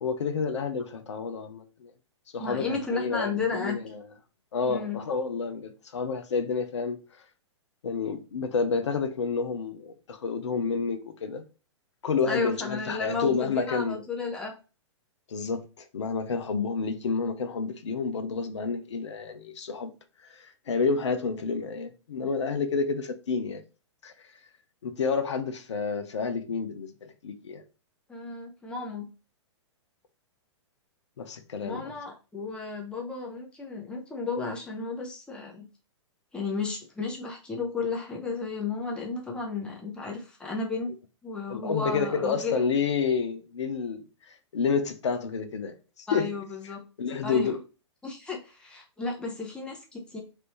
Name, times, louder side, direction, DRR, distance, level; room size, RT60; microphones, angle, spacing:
voice 1, 0.0-1.9 2.3-4.0 4.5-7.0 7.8-11.4 12.0-14.0 15.3-19.9 20.3-23.6 24.0-24.1 24.8-27.6 31.2-31.8 41.5-46.4 47.0-47.6, left 5 dB, 70° left, 0.5 m, -29 dB
voice 2, 2.4-3.8 4.6-5.0 12.3-14.5 28.1-29.1 31.6-35.7 36.3-40.9 41.2-42.6 46.1-46.8 47.2-47.6 48.0-50.2, left 4 dB, 5° left, 0.6 m, -33 dB
3.2 x 2.6 x 3.0 m
figure-of-eight pair, 110°, 16 cm